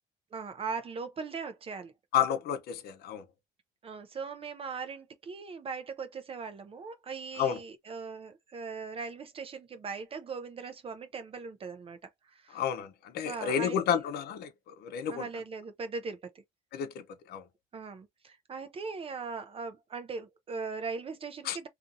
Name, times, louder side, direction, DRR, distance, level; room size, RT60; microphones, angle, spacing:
voice 1, 0.3-1.9 3.8-12.6 13.2-14.0 15.1-16.4 17.7-21.7, right 5 dB, 35° right, 0.5 m, -40 dB
voice 2, 2.1-3.2 7.4-7.6 12.5-15.2 16.7-17.0 17.3-17.4 21.5-21.6, left 8 dB, 70° left, 0.6 m, -31 dB
2.6 x 2.4 x 2.5 m
cardioid pair, 110°, 17 cm